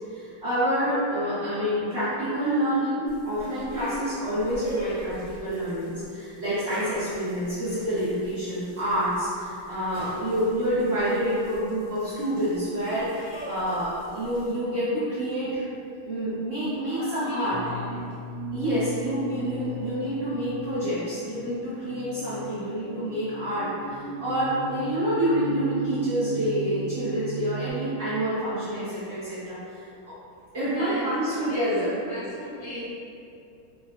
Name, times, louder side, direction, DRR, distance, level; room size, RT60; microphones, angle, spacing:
voice 1, 0.1-15.6 16.0-17.6 18.5-29.8 30.5-32.0, equal, 75° right, -14 dB, 0.6 m, -27 dB
sound 1, 3.1-14.5, equal, 5° right, 0.6 m, -43 dB
voice 2, 16.9-17.8 28.6-28.8 30.6-31.7 32.1-32.9, left 1 dB, 80° left, -10 dB, 1.5 m, -37 dB
sound 2, 17.5-27.7, right 2 dB, 55° left, 1.0 m, -36 dB
3.7 x 2.3 x 2.2 m, 2.6 s
omnidirectional pair, 2.3 m